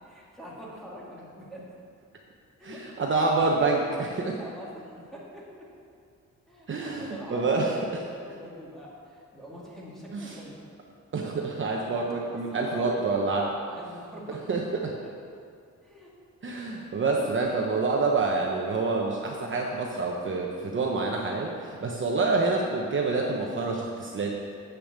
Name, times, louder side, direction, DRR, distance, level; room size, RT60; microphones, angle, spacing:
voice 1, 0.0-1.7 2.6-2.8 4.0-5.7 6.5-10.6 11.6-13.0 13.7-14.4 15.0-15.1 15.8-16.1 17.1-17.2, equal, ahead, -6 dB, 2.3 m, -44 dB
voice 2, 2.6-4.4 6.7-7.8 10.1-10.4 11.1-13.6 14.5-14.9 16.4-24.5, right 3 dB, 40° right, -1 dB, 0.9 m, -27 dB
8.3 x 6.9 x 7.2 m, 2.4 s
wide cardioid pair, 145°, 30 cm